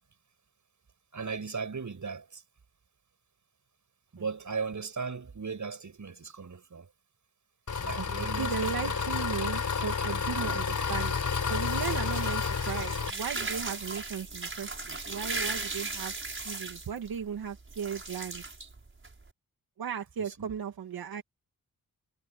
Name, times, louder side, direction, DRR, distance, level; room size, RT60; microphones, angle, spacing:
voice 1, 1.1-2.4 4.1-6.9 7.8-9.0 20.4-20.5, right 5 dB, 55° right, 7.9 m, -37 dB
Engine, 7.7-13.1, left 5 dB, 55° left, 3.9 m, -30 dB
voice 2, 8.4-11.1 11.5-16.1 16.4-18.4 19.8-21.2, right 7 dB, 85° right, 2.1 m, -36 dB
sound 1, 10.2-19.3, right 3 dB, 35° right, 7.0 m, -38 dB
cardioid pair, 60°, 35 cm